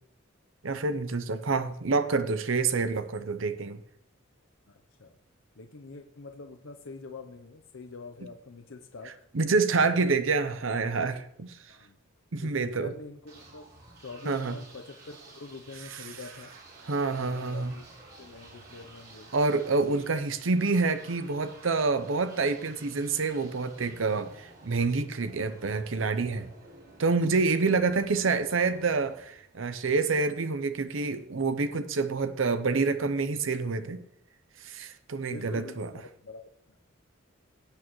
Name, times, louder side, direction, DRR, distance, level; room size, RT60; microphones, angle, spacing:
voice 1, 0.6-3.8 9.3-11.6 12.3-12.9 14.3-14.5 15.9-16.0 16.9-17.7 19.3-26.5 27.0-34.0 34.6-35.9, right 4 dB, 70° right, 11 dB, 0.7 m, -27 dB
voice 2, 4.7-5.2 5.6-9.1 9.9-10.1 11.7-12.0 12.4-13.6 14.0-16.5 17.0-17.9 18.2-19.3 35.3-36.8, left 3 dB, 70° left, 5 dB, 0.7 m, -45 dB
sound 1, 13.3-30.0, right 2 dB, 50° right, 4.3 m, -52 dB
17.0 x 8.6 x 3.1 m, 0.70 s
head